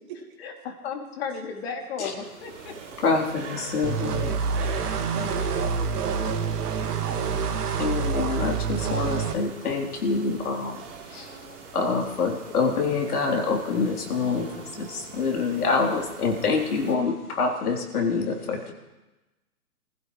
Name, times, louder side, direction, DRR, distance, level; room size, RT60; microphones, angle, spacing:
voice 1, 0.4-2.7, left 5 dB, 40° left, 2 dB, 3.0 m, -34 dB
sound 1, 2.2-17.0, right 6 dB, 50° right, 3.7 m, -43 dB
voice 2, 3.0-4.4 7.8-11.4 11.7-18.7, left 4 dB, 70° left, 0 dB, 3.8 m, -26 dB
sound 2, 3.8-9.4, right 6 dB, 75° right, 1.8 m, -27 dB
voice 3, 5.1-7.5, right 5 dB, 30° right, 1 dB, 2.4 m, -37 dB
26.0 x 15.5 x 3.3 m, 1.1 s
hypercardioid pair, 155°, 47 cm